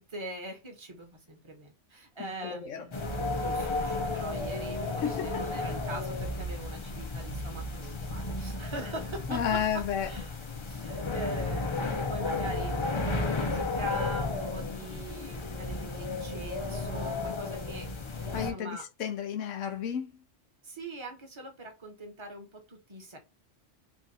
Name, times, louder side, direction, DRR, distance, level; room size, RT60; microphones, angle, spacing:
voice 1, 0.0-2.9 3.4-9.6 10.0-10.3 10.7-17.9 18.2-18.8 20.6-23.2, right 1 dB, 25° right, 1.1 m, -42 dB
voice 2, 2.4-2.8 5.0-5.4 9.3-10.1 18.3-20.1, left 8 dB, 90° left, 1.1 m, -32 dB
sound 1, 2.9-18.5, left 3 dB, 35° left, 0.5 m, -33 dB
3.5 x 2.5 x 4.1 m
omnidirectional pair, 1.3 m